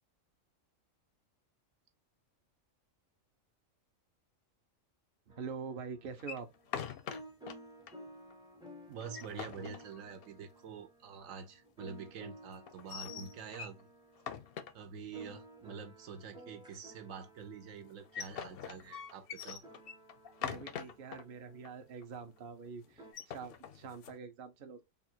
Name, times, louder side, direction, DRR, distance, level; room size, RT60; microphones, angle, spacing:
sound 1, 5.3-23.1, right 1 dB, 5° right, 0.5 m, -55 dB
voice 1, 5.3-6.5 20.4-24.8, right 6 dB, 50° right, 0.8 m, -45 dB
sound 2, 6.2-7.6 7.9-8.0 8.3-8.4 8.9-10.4 12.7-13.8 14.2-15.2 17.8-21.2 21.6-21.7 22.0-22.4 23.0-24.2, left 8 dB, 60° left, 0.6 m, -43 dB
voice 2, 8.9-13.9 14.7-19.6, right 6 dB, 80° right, 1.1 m, -47 dB
3.4 x 2.3 x 4.3 m
omnidirectional pair, 1.4 m